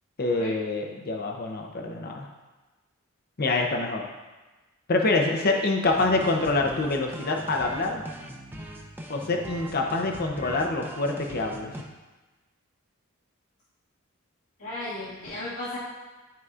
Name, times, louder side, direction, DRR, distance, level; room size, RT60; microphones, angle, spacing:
voice 1, 0.2-2.3 3.4-4.0 4.9-8.0 9.1-11.7, left 3 dB, 45° left, 2 dB, 0.7 m, -26 dB
sound 1, 5.9-11.8, right 1 dB, 10° right, 0.6 m, -40 dB
voice 2, 14.6-15.8, left 1 dB, 85° left, -11 dB, 1.8 m, -35 dB
12.0 x 4.7 x 2.4 m, 1.2 s
head